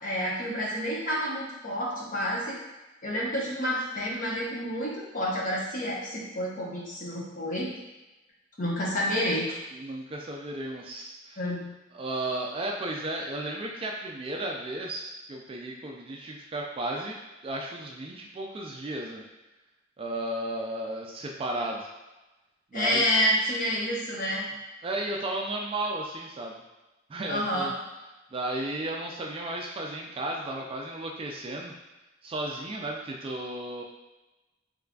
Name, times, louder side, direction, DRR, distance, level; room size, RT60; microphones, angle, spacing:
voice 1, 0.0-2.6 3.0-7.8 8.6-9.5 11.4-11.6 22.7-24.5 27.3-27.7, equal, 45° left, -5 dB, 0.9 m, -29 dB
voice 2, 9.7-11.4 11.9-19.2 20.0-21.9 22.7-23.1 24.8-26.6 27.1-27.7 28.3-31.7 32.2-33.8, right 1 dB, 30° right, 0 dB, 0.3 m, -34 dB
3.7 x 3.2 x 2.3 m, 1.1 s
head